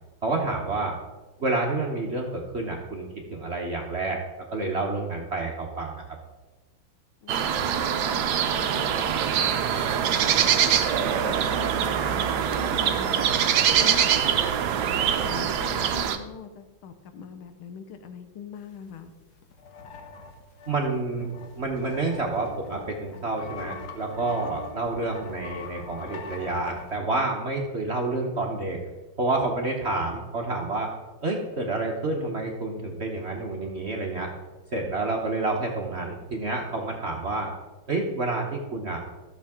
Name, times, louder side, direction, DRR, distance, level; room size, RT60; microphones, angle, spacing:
voice 1, 0.2-0.9 1.4-4.2 4.5-6.0 20.7-28.8 29.2-30.9 31.2-34.3 34.7-37.5 37.9-39.0, right 2 dB, 45° right, 1 dB, 1.0 m, -29 dB
voice 2, 7.2-8.1 8.5-10.5 10.9-13.3 13.8-14.7 14.9-19.1 24.4-24.7, left 6 dB, 85° left, 8 dB, 1.7 m, -42 dB
sound 1, 7.3-16.2, right 8 dB, 65° right, 1.1 m, -24 dB
sound 2, 8.6-15.3, right 9 dB, 85° right, 1.5 m, -34 dB
sound 3, 19.1-19.2 19.4-27.0, left 4 dB, 55° left, 1.5 m, -42 dB
13.0 x 6.9 x 3.6 m, 1.2 s
omnidirectional pair, 2.2 m